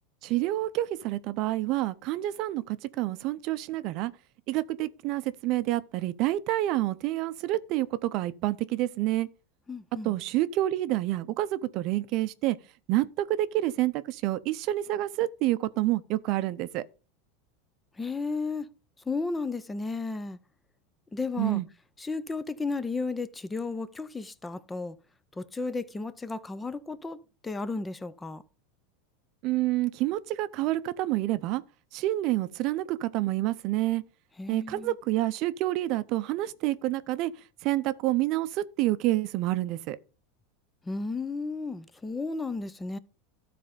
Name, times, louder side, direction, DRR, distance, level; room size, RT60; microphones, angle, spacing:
voice 1, 0.2-4.1 4.5-9.3 10.0-12.6 12.9-16.8 21.4-21.6 29.4-31.6 31.9-34.0 34.5-37.3 37.6-40.0, right 15 dB, 50° right, 0.6 m, -28 dB
voice 2, 9.7-10.1 18.0-18.7 19.1-20.4 21.1-21.6 22.0-25.0 25.4-28.4 34.4-34.9 40.9-43.0, left 3 dB, 10° left, 0.5 m, -33 dB
12.5 x 4.3 x 5.0 m
supercardioid pair, 135°, 0 cm